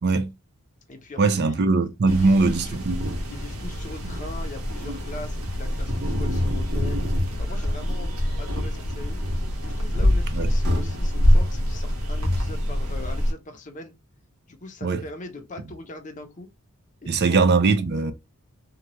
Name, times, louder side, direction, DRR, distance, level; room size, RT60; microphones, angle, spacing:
voice 1, 0.0-0.3 1.2-3.0 10.3-10.5 14.8-15.0 17.1-18.1, right 3 dB, 50° right, 0.5 m, -21 dB
voice 2, 0.9-1.6 2.1-2.8 3.3-7.0 7.4-9.2 9.6-14.0 14.5-16.5 17.0-17.4, left 2 dB, 35° left, 0.6 m, -41 dB
sound 1, 2.1-13.3, left 1 dB, 80° right, 1.0 m, -25 dB
2.9 x 2.3 x 2.9 m
head